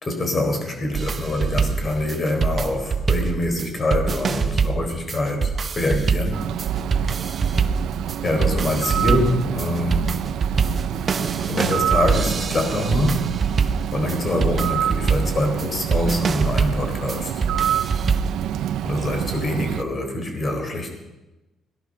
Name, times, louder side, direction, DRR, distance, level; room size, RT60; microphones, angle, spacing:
voice 1, 0.0-6.4 8.2-10.1 10.9-11.1 11.4-13.3 13.9-17.3 18.8-20.9, left 1 dB, 30° left, 4 dB, 4.0 m, -25 dB
sound 1, 0.9-18.4, right 5 dB, 35° right, 0.9 m, -24 dB
Bird, 6.3-19.8, right 10 dB, 70° right, 0.5 m, -27 dB
18.0 x 11.0 x 6.3 m, 1.0 s
cardioid pair, 110°, 0 cm